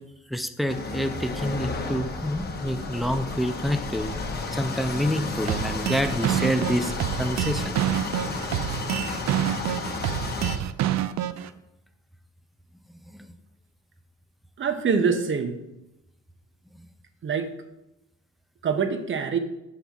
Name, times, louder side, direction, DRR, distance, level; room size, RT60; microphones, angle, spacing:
voice 1, 0.3-4.1 4.5-6.9 7.2-7.8 13.1-13.2, equal, ahead, 8 dB, 0.4 m, -27 dB
sound 1, 0.7-10.6, left 3 dB, 35° left, 1.0 m, -32 dB
sound 2, 5.5-11.5, right 12 dB, 70° right, 0.4 m, -27 dB
voice 2, 14.6-15.6 17.2-17.5 18.6-19.4, right 6 dB, 40° right, 8 dB, 0.8 m, -24 dB
6.0 x 5.6 x 3.5 m, 0.92 s
cardioid pair, 90°, 30 cm